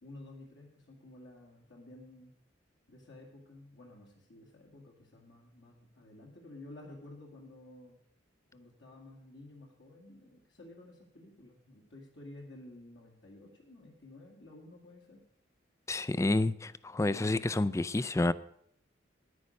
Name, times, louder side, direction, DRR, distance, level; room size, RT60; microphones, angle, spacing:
voice 1, 0.0-2.3 2.9-8.0 8.5-15.2, left 2 dB, 70° left, 2.1 m, -52 dB
voice 2, 15.9-18.3, left 2 dB, 15° left, 0.4 m, -29 dB
10.5 x 9.5 x 6.4 m
head